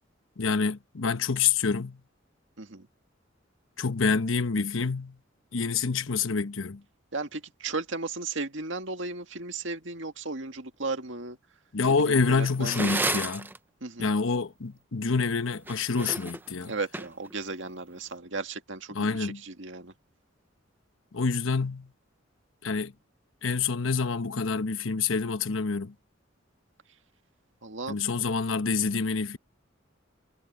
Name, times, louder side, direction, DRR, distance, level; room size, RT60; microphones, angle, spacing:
voice 1, 0.4-2.0 3.8-5.2 5.5-6.8 11.7-13.5 14.0-16.7 18.9-19.4 21.1-21.9 22.6-22.9 23.4-25.9 27.9-29.4, left 4 dB, 85° left, 1.0 m, -27 dB
voice 2, 7.1-11.4 11.9-13.0 13.8-14.1 16.6-19.9 27.6-28.0, right 3 dB, 70° right, 2.0 m, -35 dB
sound 1, 12.2-13.6 15.5-17.3, right 2 dB, 10° right, 0.6 m, -32 dB
head